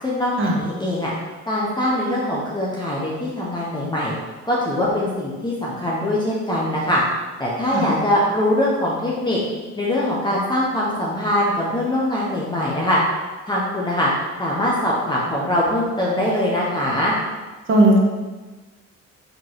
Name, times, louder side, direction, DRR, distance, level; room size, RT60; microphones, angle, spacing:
voice 1, 0.0-1.1 1.5-4.1 4.4-7.0 7.4-9.4 9.8-13.0 13.5-14.1 14.4-17.1, left 1 dB, 15° left, -6 dB, 1.2 m, -22 dB
voice 2, 17.7-18.0, right 1 dB, 40° right, -1 dB, 1.4 m, -15 dB
5.3 x 3.8 x 4.7 m, 1.3 s
cardioid pair, 90°, 30 cm